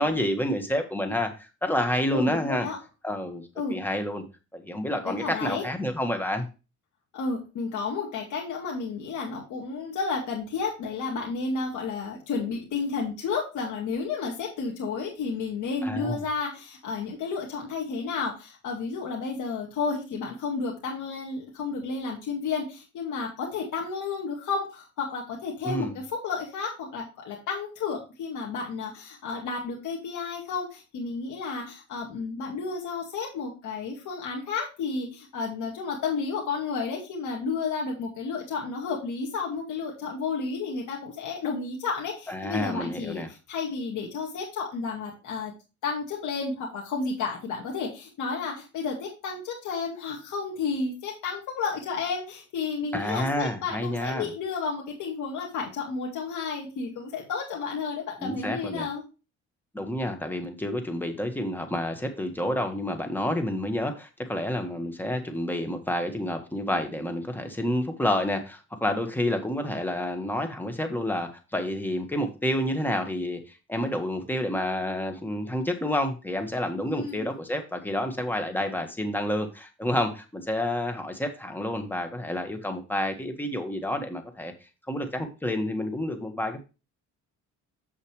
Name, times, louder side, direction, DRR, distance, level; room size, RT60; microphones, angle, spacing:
voice 1, 0.0-2.7 3.0-3.4 3.7-4.2 4.5-6.5 15.8-16.2 25.6-25.9 42.3-43.3 52.9-54.3 58.2-58.9 59.7-84.5 84.9-86.6, left 1 dB, 5° left, 5 dB, 1.6 m, -29 dB
voice 2, 2.1-2.8 3.6-3.8 5.0-5.6 7.1-43.2 43.5-45.5 45.8-59.0 76.8-77.3, left 4 dB, 80° left, -1 dB, 2.2 m, -32 dB
7.7 x 6.8 x 3.2 m, 0.30 s
cardioid pair, 90°, 30 cm